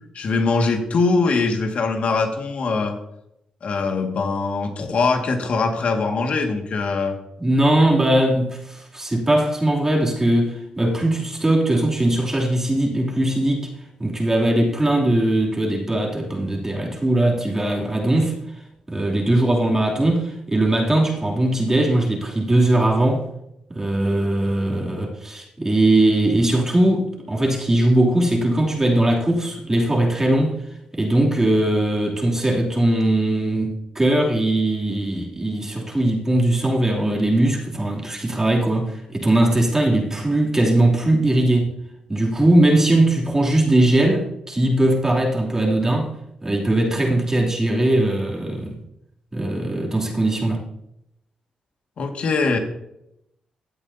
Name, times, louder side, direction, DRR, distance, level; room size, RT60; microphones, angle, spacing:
voice 1, 0.1-3.0 3.6-7.2 52.0-52.6, left 4 dB, 65° left, 1.9 m, -22 dB
voice 2, 7.4-13.7 14.0-18.3 18.9-23.3 23.7-30.6 30.9-41.7 42.1-46.1 46.4-48.7 49.3-50.6, right 1 dB, 20° right, 2.9 m, -20 dB
15.0 x 8.6 x 2.8 m
cardioid pair, 65°, 2 cm